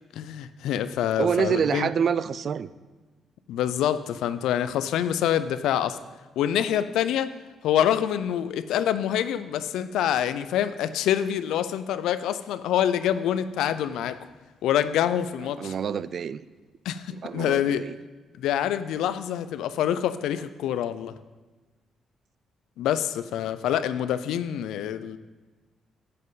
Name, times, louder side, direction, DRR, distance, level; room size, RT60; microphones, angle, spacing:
voice 1, 0.1-1.9 3.5-6.0 6.4-7.3 7.6-14.2 14.6-15.7 16.9-17.8 18.4-21.1 22.8-25.2, left 10 dB, 85° left, 13 dB, 0.5 m, -26 dB
voice 2, 1.2-2.7 15.4-16.4 17.1-18.0, right 7 dB, 55° right, 16 dB, 0.3 m, -27 dB
10.5 x 7.6 x 4.0 m, 1.3 s
cardioid pair, 90°, 0 cm